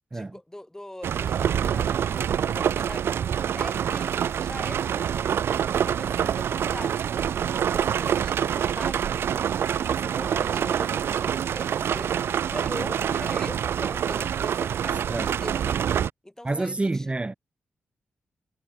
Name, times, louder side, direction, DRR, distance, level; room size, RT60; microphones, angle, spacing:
voice 1, 0.1-3.1 3.6-5.2 5.7-9.5 9.9-12.2 12.5-15.6 16.2-17.1, left 1 dB, 15° left, 2.6 m, -42 dB
sound 1, 1.0-16.1, right 9 dB, 80° right, 0.4 m, -26 dB
voice 2, 16.4-17.3, right 2 dB, 30° right, 1.8 m, -28 dB
cardioid pair, 55°, 4 cm